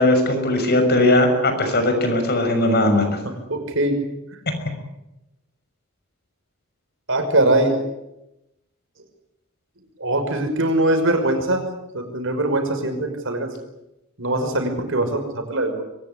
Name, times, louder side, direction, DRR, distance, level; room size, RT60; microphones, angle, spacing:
voice 1, 0.0-3.2, left 1 dB, 50° left, 6 dB, 6.1 m, -18 dB
voice 2, 3.5-4.0 7.1-7.8 10.0-11.6 11.9-13.5 14.2-15.8, right 1 dB, 65° right, 5 dB, 5.8 m, -21 dB
23.5 x 19.5 x 9.9 m, 0.89 s
head